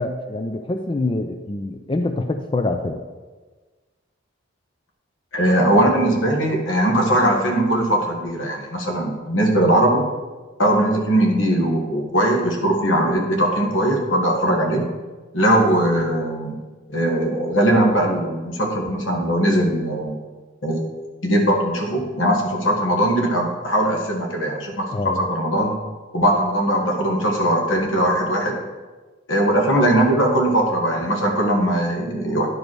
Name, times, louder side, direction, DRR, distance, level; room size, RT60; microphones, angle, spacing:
voice 1, 0.0-3.0 24.9-25.2, left 2 dB, 25° left, 6 dB, 0.4 m, -25 dB
voice 2, 5.3-10.0 10.6-14.8 15.3-16.6 16.9-20.2 20.6-20.9 21.2-25.7 26.1-28.5 29.3-32.5, right 1 dB, 85° left, 1 dB, 1.6 m, -20 dB
10.5 x 5.2 x 4.6 m, 1.3 s
head